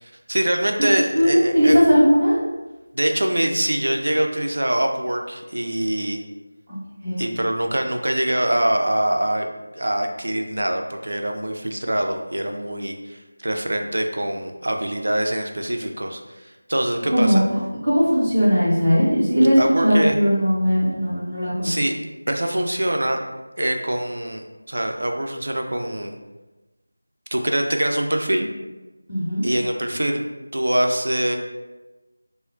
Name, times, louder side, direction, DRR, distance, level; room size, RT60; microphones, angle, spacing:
voice 1, 0.0-1.8 2.9-6.2 7.2-9.5 9.8-17.4 19.6-20.2 21.6-21.9 22.3-23.2 23.6-26.1 27.3-28.5 29.4-30.2 30.5-31.4, right 1 dB, 70° right, 3 dB, 0.4 m, -24 dB
voice 2, 1.1-2.4 7.0-7.3 17.1-17.4 17.8-21.8 29.1-29.5, equal, 20° right, -11 dB, 0.8 m, -18 dB
2.2 x 2.1 x 3.7 m, 1.1 s
figure-of-eight pair, 175°, 0 cm